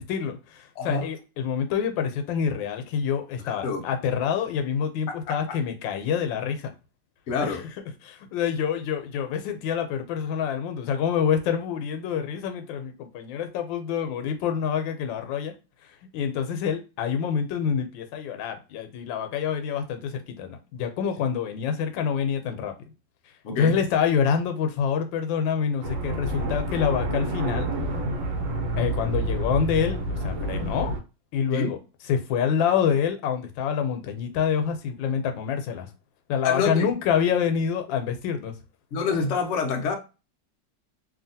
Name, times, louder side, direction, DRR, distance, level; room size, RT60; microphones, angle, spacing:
voice 1, 0.0-6.7 7.4-7.6 8.0-15.5 16.1-22.7 23.6-27.7 28.8-30.9 31.3-31.8 32.0-35.9 36.3-38.5, left 7 dB, 90° left, 1.3 m, -27 dB
voice 2, 3.5-3.8 5.1-5.4 7.3-7.6 23.4-23.7 31.5-31.7 36.4-36.9 38.9-40.0, left 5 dB, 70° left, 0.7 m, -27 dB
sound 1, 25.8-31.0, right 1 dB, 90° right, 1.4 m, -28 dB
2.8 x 2.7 x 2.6 m
omnidirectional pair, 2.0 m